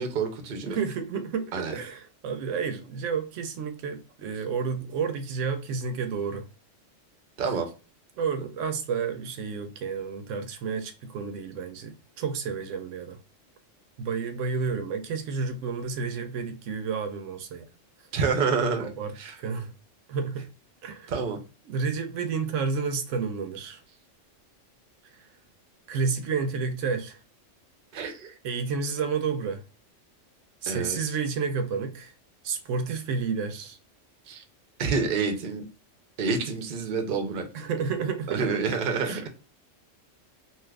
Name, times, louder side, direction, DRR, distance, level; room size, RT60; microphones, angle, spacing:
voice 1, 0.0-0.8 1.5-1.8 7.4-7.7 18.1-18.9 19.2-19.4 21.1-21.4 27.9-28.3 30.7-31.0 34.3-34.4 34.8-35.6 36.2-37.7 38.3-39.3, right 5 dB, 55° right, 0.7 m, -28 dB
voice 2, 0.7-6.5 7.4-7.5 8.2-13.2 14.0-17.7 18.8-19.7 20.1-20.5 20.8-21.1 21.7-23.8 25.2-25.3 25.9-27.2 28.4-29.6 30.6-32.1 32.4-33.8 37.5-38.6 39.0-39.3, right 5 dB, 80° right, 0.9 m, -30 dB
2.8 x 2.4 x 3.2 m
omnidirectional pair, 1.3 m